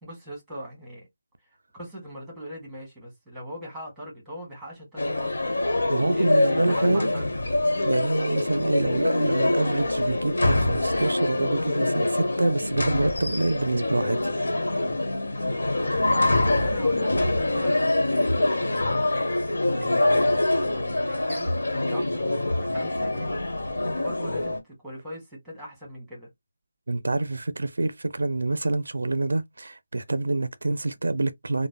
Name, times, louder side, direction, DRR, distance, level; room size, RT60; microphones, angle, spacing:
voice 1, 0.0-1.1 1.7-5.5 6.1-7.3 16.0-19.0 19.8-23.3 23.8-26.3, equal, ahead, 1.3 m, -41 dB
sound 1, 5.0-24.6, left 2 dB, 90° left, 1.0 m, -25 dB
voice 2, 5.9-7.1 7.8-14.2 26.9-31.7, right 2 dB, 85° right, 0.4 m, -27 dB
3.2 x 2.0 x 2.2 m
figure-of-eight pair, 170°, 0 cm